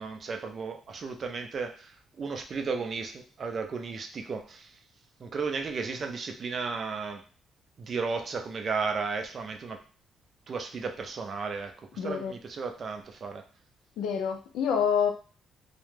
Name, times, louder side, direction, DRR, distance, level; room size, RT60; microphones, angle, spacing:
voice 1, 0.0-4.8 5.2-7.2 7.8-9.8 10.5-13.4, right 4 dB, 45° right, 5 dB, 0.4 m, -34 dB
voice 2, 12.0-12.3 14.0-15.1, left 7 dB, 85° left, 5 dB, 0.4 m, -27 dB
2.2 x 2.0 x 3.1 m, 0.37 s
cardioid pair, 90°, 0 cm